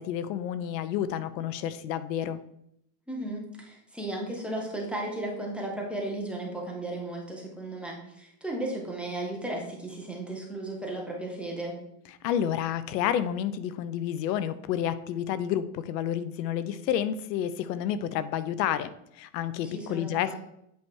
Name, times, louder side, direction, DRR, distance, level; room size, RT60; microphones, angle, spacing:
voice 1, 0.0-2.4 12.2-20.4, left 10 dB, 90° left, 14 dB, 0.7 m, -30 dB
voice 2, 3.1-11.8 19.6-20.4, right 1 dB, ahead, -1 dB, 0.6 m, -35 dB
8.2 x 3.3 x 4.6 m, 0.76 s
supercardioid pair, 160°, 49 cm